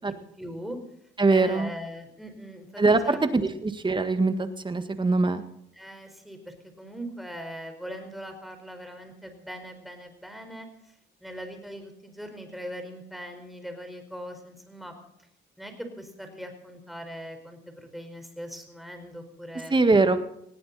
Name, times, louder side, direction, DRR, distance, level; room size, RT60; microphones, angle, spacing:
voice 1, 0.4-0.8 1.3-3.2 5.7-10.9 11.2-14.9 15.6-19.7, equal, ahead, 5 dB, 4.6 m, -40 dB
voice 2, 1.2-1.7 2.8-5.4 19.7-20.2, right 3 dB, 25° right, 9 dB, 1.7 m, -22 dB
20.0 x 16.5 x 4.2 m, 0.76 s
cardioid pair, 90°, 20 cm